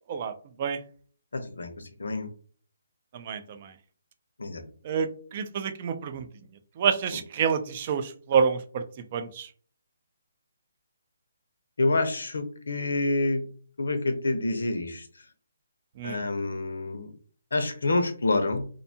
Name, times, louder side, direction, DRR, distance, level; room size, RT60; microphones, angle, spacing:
voice 1, 1.3-2.3 4.4-4.6 11.8-13.4 13.8-15.1 16.0-17.1 17.5-18.7, left 2 dB, 85° left, 8 dB, 0.6 m, -27 dB
voice 2, 3.1-3.7 4.8-6.3 6.8-9.5 16.0-16.2, right 6 dB, 30° right, 8 dB, 0.3 m, -28 dB
2.6 x 2.3 x 2.7 m, 0.44 s
hypercardioid pair, 170°, 0 cm